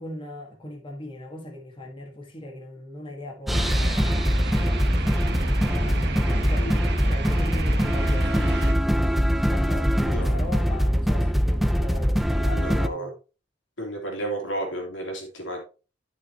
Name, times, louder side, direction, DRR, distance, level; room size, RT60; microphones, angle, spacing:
voice 1, 0.0-4.5 5.7-6.7 7.0-13.1, left 1 dB, 30° left, 1.7 m, -39 dB
sound 1, 3.5-12.9, equal, ahead, 0.5 m, -22 dB
sound 2, 3.5-8.7, right 3 dB, 60° right, 1.2 m, -33 dB
voice 2, 6.6-6.9 10.0-10.4 12.5-13.1 13.8-15.6, right 1 dB, 85° left, 3.1 m, -32 dB
11.5 x 6.3 x 2.9 m
head